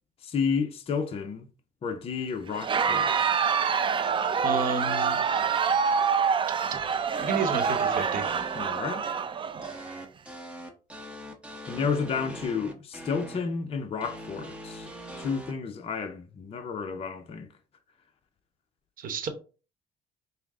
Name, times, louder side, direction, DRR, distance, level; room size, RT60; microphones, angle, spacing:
voice 1, 0.2-1.5 1.8-3.4 8.5-9.1 11.7-14.9 15.2-17.5, left 5 dB, 35° left, 0.6 m, -31 dB
Crowd, 2.5-10.0, right 6 dB, 30° right, 0.4 m, -26 dB
voice 2, 4.4-5.6 7.2-8.2 19.0-19.3, right 4 dB, 55° right, 0.9 m, -31 dB
sound 1, 7.1-8.7 9.6-13.4 14.0-15.5, equal, 5° right, 0.9 m, -42 dB
5.6 x 2.0 x 3.6 m
cardioid pair, 110°, 17 cm